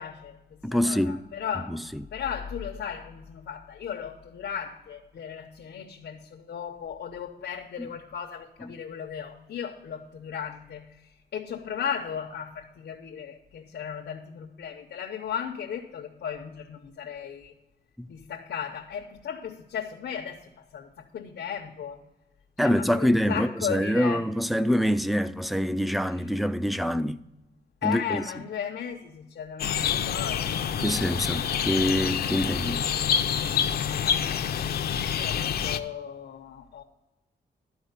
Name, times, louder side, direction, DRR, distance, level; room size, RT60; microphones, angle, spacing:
voice 1, 0.0-1.8 2.1-17.5 18.1-22.0 22.6-24.3 26.1-26.2 27.8-30.8 33.9-36.8, left 8 dB, 90° left, 0.9 m, -36 dB
voice 2, 0.6-1.2 1.7-2.0 7.8-7.9 18.0-18.1 22.6-27.2 27.8-28.2 30.8-32.8, equal, ahead, 0.3 m, -25 dB
sound 1, 29.6-35.8, left 8 dB, 65° left, 0.5 m, -27 dB
12.0 x 4.8 x 8.0 m
wide cardioid pair, 160°, 17 cm